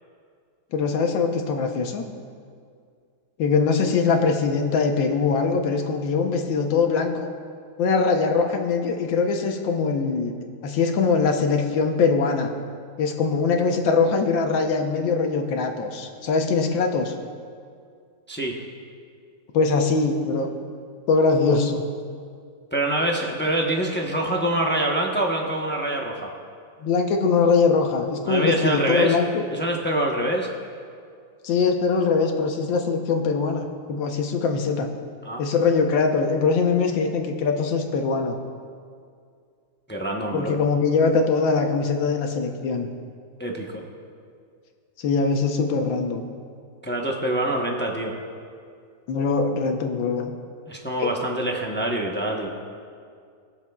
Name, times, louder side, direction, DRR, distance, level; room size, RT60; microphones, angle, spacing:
voice 1, 0.7-2.1 3.4-7.1 7.8-10.3 10.6-12.5 13.0-17.1 19.5-20.5 21.1-21.8 26.8-29.4 31.4-34.9 35.4-38.4 40.3-42.9 45.0-46.3 49.1-50.3 51.0-51.1, left 4 dB, 90° left, 4 dB, 1.7 m, -22 dB
voice 2, 22.7-26.3 28.2-29.2 29.5-30.5 35.2-35.4 39.9-40.6 43.4-43.8 46.8-48.2 50.7-52.5, right 1 dB, 15° left, 0 dB, 0.3 m, -25 dB
22.0 x 7.3 x 2.3 m, 2.2 s
omnidirectional pair, 2.0 m